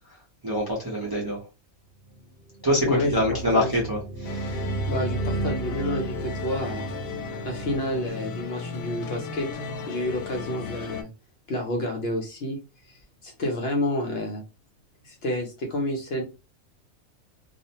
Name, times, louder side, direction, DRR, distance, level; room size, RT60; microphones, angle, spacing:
voice 1, 0.4-1.4 2.6-4.6, equal, 25° right, 0.5 m, -25 dB
sound 1, 2.2-2.3 2.5-7.8, right 2 dB, 50° right, 1.0 m, -32 dB
voice 2, 2.8-3.7 4.9-6.9 7.4-9.5 9.9-11.1 11.5-12.6 12.8-14.4 15.0-16.2, left 1 dB, 60° left, 0.8 m, -29 dB
sound 2, 4.2-11.0, left 5 dB, 80° left, 1.0 m, -36 dB
2.4 x 2.1 x 2.8 m
omnidirectional pair, 1.4 m